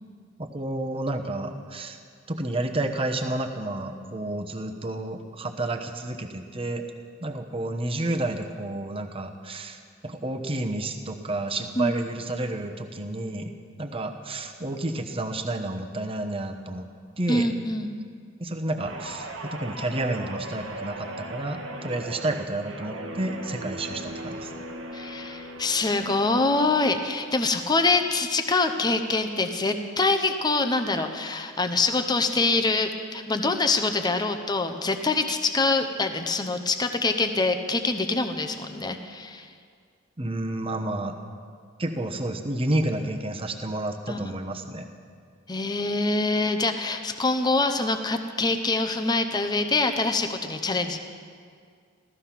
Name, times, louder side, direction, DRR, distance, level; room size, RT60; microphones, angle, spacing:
voice 1, 0.4-2.0 2.3-6.8 7.2-13.5 13.8-16.9 17.2-17.5 18.4-24.5 40.2-41.2 41.8-44.9, right 2 dB, 30° right, 5 dB, 1.0 m, -30 dB
voice 2, 17.3-17.9 24.9-39.5 44.1-44.3 45.5-51.0, left 3 dB, 20° left, 6 dB, 0.8 m, -25 dB
Guitar, 18.8-27.4 27.8-28.1, right 1 dB, 85° right, 1.4 m, -38 dB
15.5 x 14.0 x 5.9 m, 2.1 s
head